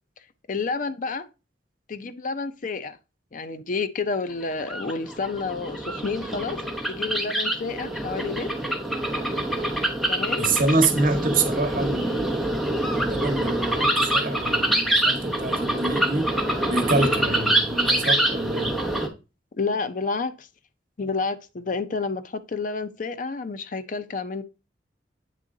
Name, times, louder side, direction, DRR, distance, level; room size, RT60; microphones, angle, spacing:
voice 1, 0.5-1.3 1.9-3.0 3.3-6.6 6.9-8.5 10.1-11.2 19.5-20.5 21.0-24.4, left 4 dB, 50° left, 0.5 m, -30 dB
sound 1, 4.5-19.1, right 1 dB, ahead, 0.9 m, -25 dB
voice 2, 10.4-12.5 12.9-16.3 16.7-18.8, right 3 dB, 50° right, 1.1 m, -26 dB
8.3 x 3.7 x 3.7 m
head